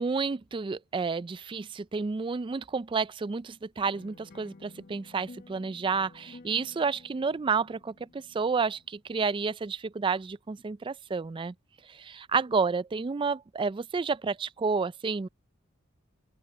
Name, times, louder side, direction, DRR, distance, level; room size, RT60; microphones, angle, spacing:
voice 1, 0.0-11.5 11.9-15.3, right 5 dB, 25° right, 0.3 m, -30 dB
sound 1, 3.8-8.9, left 2 dB, 45° left, 0.9 m, -53 dB
open air
head